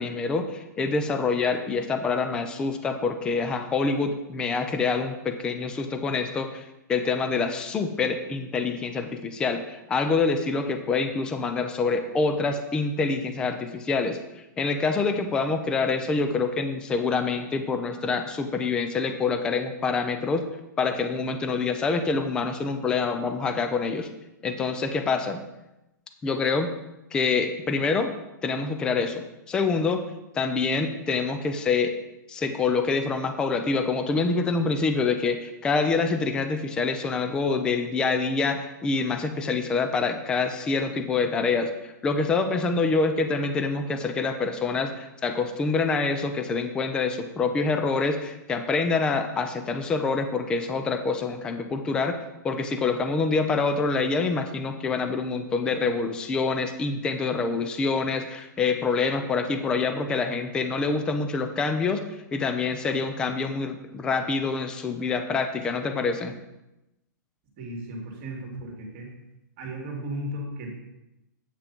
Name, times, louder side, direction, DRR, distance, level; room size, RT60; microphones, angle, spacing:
voice 1, 0.0-14.2 14.6-20.5 20.8-24.1 24.4-25.4 26.2-26.7 27.1-28.1 28.4-30.0 30.3-31.9 32.3-52.2 52.4-62.0 62.3-66.3, left 4 dB, 10° left, 7 dB, 0.4 m, -26 dB
voice 2, 67.6-69.1 69.6-70.7, right 1 dB, 35° right, 1 dB, 2.1 m, -35 dB
8.2 x 5.8 x 5.2 m, 0.94 s
hypercardioid pair, 170°, 11 cm